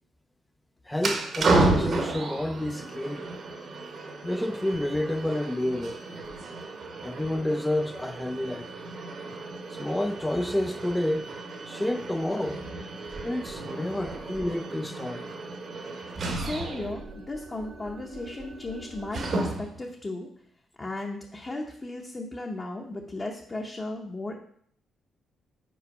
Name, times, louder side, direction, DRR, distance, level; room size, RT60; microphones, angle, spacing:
voice 1, 0.9-3.3 4.2-6.0 7.0-8.7 9.7-11.3 11.7-15.3, left 1 dB, 10° left, 0.4 m, -30 dB
sound 1, 1.0-19.9, right 2 dB, 50° right, 1.0 m, -32 dB
voice 2, 16.3-20.3 20.8-24.3, left 2 dB, 25° left, 0.8 m, -35 dB
5.5 x 4.4 x 5.3 m
cardioid pair, 100°, 0 cm